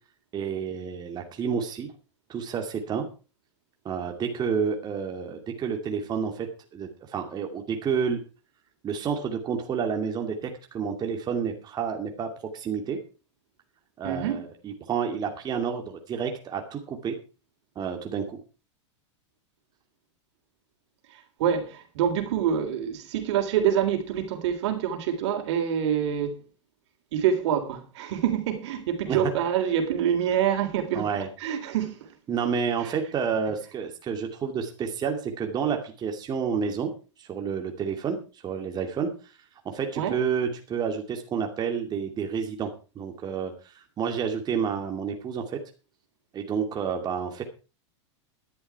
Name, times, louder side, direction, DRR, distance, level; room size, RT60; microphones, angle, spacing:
voice 1, 0.3-1.9 2.3-3.1 3.8-8.2 8.8-13.0 14.0-17.2 17.8-18.4 29.1-29.3 30.9-31.3 32.3-36.9 37.2-39.3 39.6-45.6 46.3-47.4, right 6 dB, 25° right, 2.5 m, -30 dB
voice 2, 14.0-14.5 21.1-26.4 27.1-31.1 31.4-32.1 32.8-32.9 40.0-40.2, right 9 dB, 65° right, 3.5 m, -26 dB
12.5 x 11.5 x 4.7 m
hypercardioid pair, 125°, 16 cm